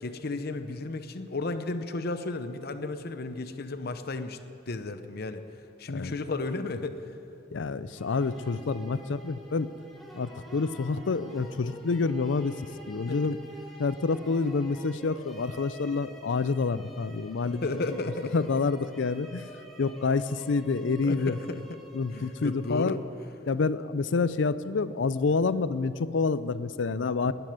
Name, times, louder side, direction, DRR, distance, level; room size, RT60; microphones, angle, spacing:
voice 1, 0.0-4.4 4.7-5.4 5.8-7.0 13.1-13.4 17.6-18.3 21.0-21.6 22.1-23.0 27.2-27.3, left 2 dB, 60° left, 9 dB, 0.8 m, -33 dB
voice 2, 7.5-9.7 10.1-12.6 12.9-13.4 13.8-17.6 18.3-19.5 19.8-21.4 21.9-23.0 23.5-27.3, left 4 dB, 85° left, 15 dB, 0.5 m, -28 dB
sound 1, 8.0-23.0, equal, ahead, 1.9 m, -48 dB
12.0 x 11.0 x 9.3 m, 2.7 s
head